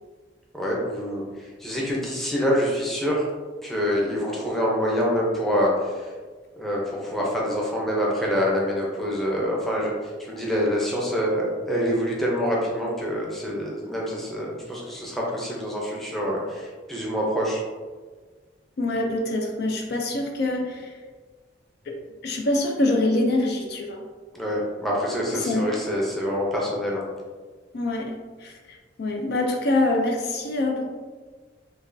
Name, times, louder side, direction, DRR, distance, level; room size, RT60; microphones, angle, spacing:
voice 1, 0.5-3.3 3.6-6.1 6.6-9.9 10.2-17.6 24.3-27.0, equal, ahead, -4 dB, 0.6 m, -26 dB
voice 2, 18.8-21.0 21.9-24.0 25.3-25.7 27.7-28.1 28.4-30.8, left 2 dB, 55° left, 2 dB, 0.4 m, -25 dB
5.1 x 2.2 x 2.6 m, 1.4 s
head